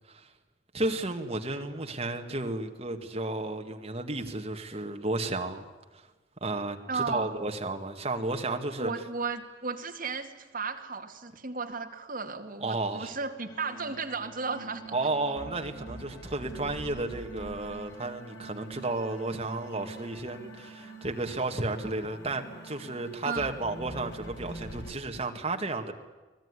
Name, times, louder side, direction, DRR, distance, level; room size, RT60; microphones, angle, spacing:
voice 1, 0.7-5.7 5.9-6.1 6.4-8.9 12.6-13.2 14.9-25.9, right 2 dB, 30° right, 4 dB, 2.1 m, -33 dB
voice 2, 6.9-7.4 8.8-14.9 23.2-23.6, right 4 dB, 45° right, 4 dB, 2.2 m, -34 dB
sound 1, 13.4-24.9, right 1 dB, 75° left, 6.4 m, -45 dB
24.5 x 18.5 x 9.9 m, 1.2 s
head